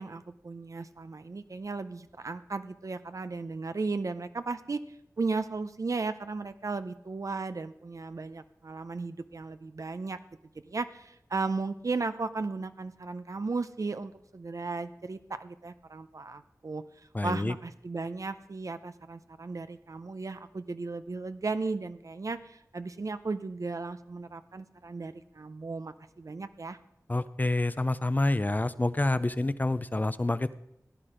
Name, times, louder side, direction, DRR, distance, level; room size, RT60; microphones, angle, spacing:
voice 1, 0.0-4.8 5.2-10.2 10.7-16.8 17.2-26.8, right 3 dB, 60° right, 11 dB, 0.6 m, -35 dB
voice 2, 17.1-17.5 27.1-30.5, left 2 dB, 30° left, 14 dB, 0.5 m, -28 dB
15.5 x 9.8 x 5.0 m, 0.79 s
wide cardioid pair, 55°, 6 cm